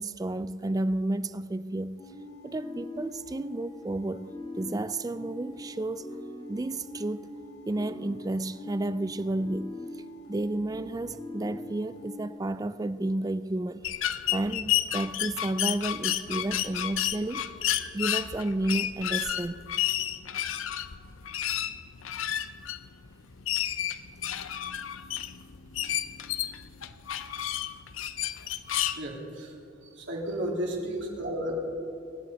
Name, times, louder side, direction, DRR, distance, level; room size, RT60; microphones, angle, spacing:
voice 1, 0.0-2.0 2.4-6.1 6.5-7.3 7.7-9.8 10.3-13.9 14.3-17.5 17.9-19.6, right 2 dB, 20° right, 0.3 m, -31 dB
sound 1, 2.0-12.3, left 2 dB, 25° left, 2.7 m, -42 dB
sound 2, 13.8-29.0, left 12 dB, 80° left, 0.6 m, -31 dB
voice 2, 28.9-29.6 29.8-31.5, right 1 dB, 60° right, 3.0 m, -33 dB
23.5 x 11.0 x 4.2 m
head